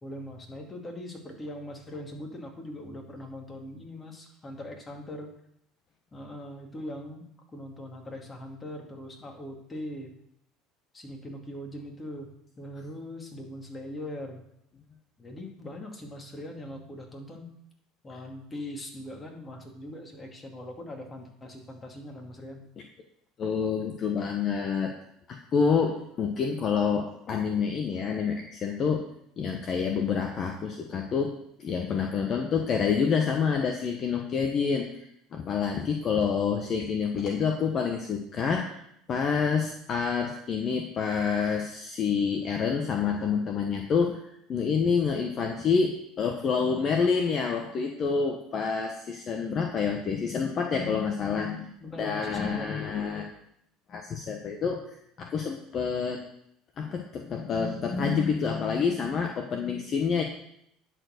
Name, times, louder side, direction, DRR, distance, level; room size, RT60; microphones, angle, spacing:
voice 1, 0.0-5.3 6.1-7.2 7.5-10.1 10.9-12.3 12.6-14.4 15.2-17.5 18.0-22.6 51.8-52.9, left 1 dB, 20° left, 1 dB, 2.4 m, -41 dB
voice 2, 23.4-24.9 25.3-29.0 29.4-38.8 39.1-44.2 44.5-51.7 52.0-53.3 53.9-54.8 55.2-56.2 56.8-60.2, left 6 dB, 45° left, 3 dB, 1.1 m, -28 dB
10.5 x 4.6 x 6.5 m, 0.74 s
supercardioid pair, 95°, 0 cm